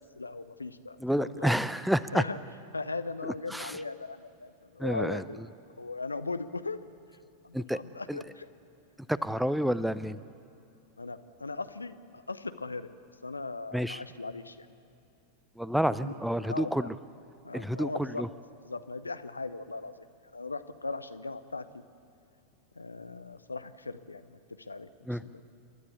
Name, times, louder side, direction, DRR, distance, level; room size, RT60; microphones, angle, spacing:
voice 1, 0.2-1.5 2.1-2.4 2.7-5.4 5.8-6.9 7.4-8.5 11.0-12.9 13.2-14.7 15.9-16.2 16.5-16.9 17.4-18.2 18.6-20.1 20.3-21.6 22.7-25.4, left 3 dB, 80° left, 11 dB, 0.8 m, -38 dB
voice 2, 1.0-2.2 3.2-3.8 4.8-5.2 7.5-7.8 8.1-8.2 9.1-10.2 13.7-14.0 15.6-16.9 17.5-18.3 25.1-25.2, equal, ahead, 16 dB, 0.5 m, -29 dB
29.0 x 12.5 x 8.4 m, 2.7 s
figure-of-eight pair, 90°, 0 cm